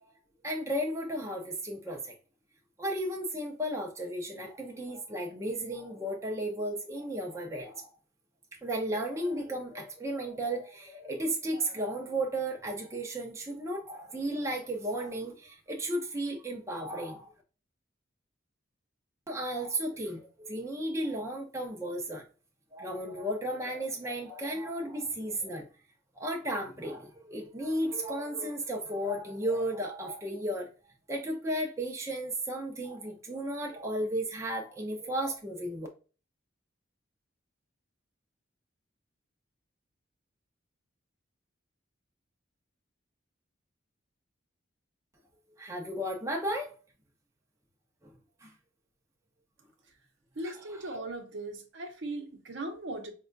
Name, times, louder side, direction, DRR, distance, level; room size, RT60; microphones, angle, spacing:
voice 1, 0.4-2.1 2.8-7.9 8.6-17.3 19.3-22.2 22.7-25.7 26.2-30.7 31.1-35.9 45.6-46.7 48.0-48.1 48.4-48.5 50.4-50.5 50.9-51.0, right 1 dB, 15° right, 0.5 m, -34 dB
voice 2, 50.4-53.1, right 2 dB, 60° right, 0.7 m, -38 dB
4.7 x 2.2 x 2.5 m
head